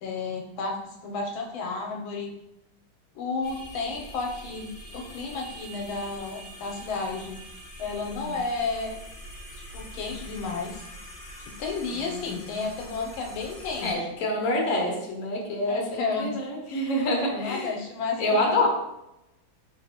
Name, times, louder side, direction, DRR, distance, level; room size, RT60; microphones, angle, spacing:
voice 1, 0.0-2.3 3.1-7.4 7.8-9.0 9.7-10.8 11.6-14.0 15.7-16.3 17.3-18.7, left 4 dB, 85° left, 1 dB, 1.4 m, -32 dB
sound 1, 3.4-13.9, equal, 35° left, 1.4 m, -44 dB
voice 2, 11.9-12.5 13.8-17.7 18.1-18.7, left 1 dB, 55° left, -1 dB, 1.0 m, -27 dB
3.9 x 3.6 x 2.8 m, 0.88 s
omnidirectional pair, 2.2 m